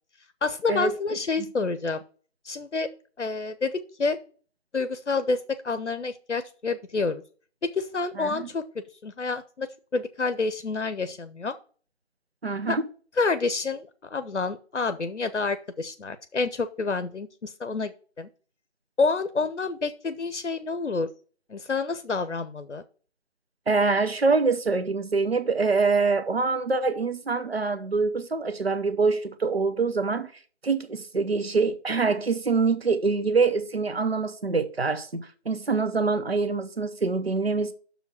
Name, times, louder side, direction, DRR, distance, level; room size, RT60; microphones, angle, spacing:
voice 1, 0.4-2.0 2.4-2.9 3.2-3.7 4.0-4.2 4.7-7.2 7.7-9.7 9.9-11.5 12.7-12.8 13.2-18.3 19.0-21.1 21.5-22.8, left 4 dB, 85° left, 0.8 m, -28 dB
voice 2, 8.2-8.5 12.4-12.8 23.7-30.3 30.6-37.7, right 4 dB, 60° right, 0.8 m, -25 dB
6.3 x 5.1 x 6.4 m
figure-of-eight pair, 175°, 35 cm